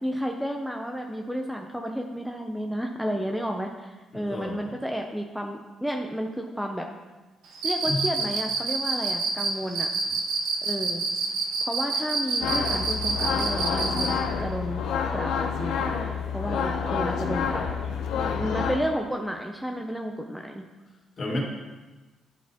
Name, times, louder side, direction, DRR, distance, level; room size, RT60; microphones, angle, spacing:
voice 1, 0.0-6.9 7.6-9.9 10.6-11.0 11.6-14.8 15.1-15.7 16.3-17.6 18.4-20.6 21.3-21.4, equal, ahead, 3 dB, 0.5 m, -32 dB
voice 2, 4.1-4.7 7.9-8.0 17.4-18.7 21.2-21.4, left 2 dB, 45° left, -3 dB, 2.0 m, -34 dB
Cricket, 7.6-14.1, right 4 dB, 90° right, 0.8 m, -27 dB
sound 1, 12.4-18.8, left 6 dB, 85° left, 0.7 m, -28 dB
11.5 x 4.1 x 2.9 m, 1.2 s
cardioid pair, 90°, 0 cm